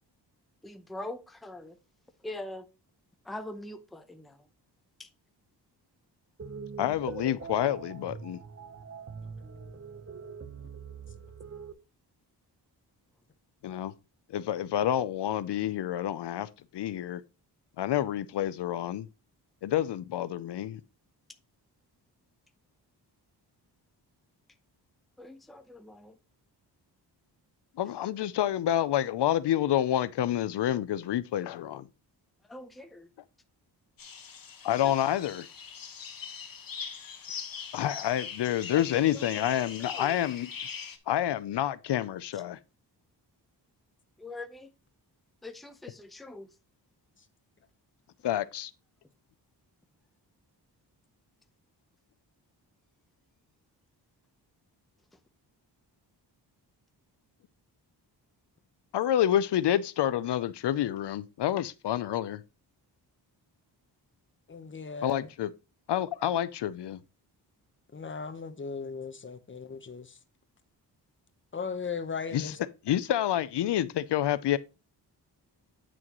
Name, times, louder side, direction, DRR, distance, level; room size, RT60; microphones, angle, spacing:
voice 1, 0.6-1.8 2.2-2.6 3.3-4.4 5.0-5.1 25.2-26.1 32.5-33.1 38.7-38.8 39.1-39.7 40.0-40.2 44.2-44.7 45.4-46.5, left 2 dB, ahead, 0.7 m, -42 dB
sound 1, 6.4-11.7, right 6 dB, 35° right, 0.8 m, -43 dB
voice 2, 6.8-8.4 13.6-13.9 14.3-17.2 17.8-19.1 19.6-20.8 27.8-31.8 34.6-35.5 37.7-40.5 41.1-42.6 48.2-48.7 58.9-62.4 65.0-65.5 65.9-67.0 72.3-72.5 72.9-74.6, left 11 dB, 75° left, 0.6 m, -28 dB
sound 2, 34.0-41.0, left 6 dB, 55° left, 1.4 m, -41 dB
voice 3, 64.5-65.3 67.9-70.2 71.5-72.6, left 5 dB, 30° left, 0.9 m, -37 dB
9.1 x 6.2 x 3.0 m
wide cardioid pair, 120°, 42 cm